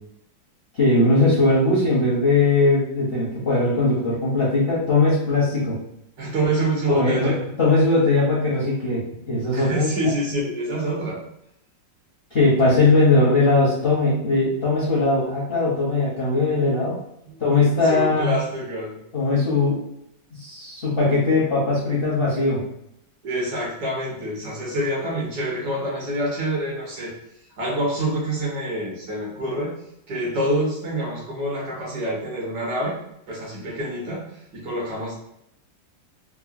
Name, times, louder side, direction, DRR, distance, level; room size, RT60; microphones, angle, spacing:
voice 1, 0.7-5.8 6.9-9.0 9.3-9.9 12.3-17.0 17.4-18.3 19.1-19.8 20.3-22.6, left 2 dB, 55° left, -8 dB, 0.6 m, -20 dB
voice 2, 6.2-7.4 9.5-11.2 16.6-16.8 17.3-19.0 23.2-27.1 27.6-29.7 30.1-33.0 33.3-35.1, right 1 dB, 65° right, -3 dB, 1.3 m, -27 dB
3.6 x 2.0 x 2.5 m, 0.80 s
omnidirectional pair, 2.0 m